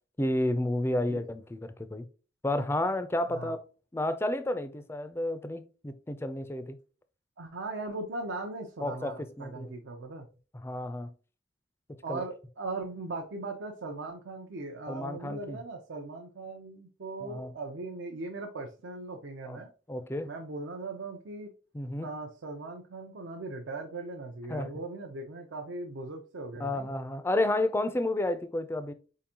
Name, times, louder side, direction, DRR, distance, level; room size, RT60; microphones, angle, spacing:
voice 1, 0.2-2.1 2.4-3.6 3.9-6.8 8.8-9.7 10.6-11.1 11.9-12.2 14.9-15.6 17.2-17.5 19.4-19.6 19.9-20.3 21.7-22.1 24.5-24.7 26.6-28.9, left 1 dB, 15° left, 0.3 m, -31 dB
voice 2, 7.4-10.3 12.0-19.7 20.2-21.5 22.0-26.9, right 2 dB, 75° right, 0.6 m, -39 dB
4.3 x 3.7 x 2.8 m
head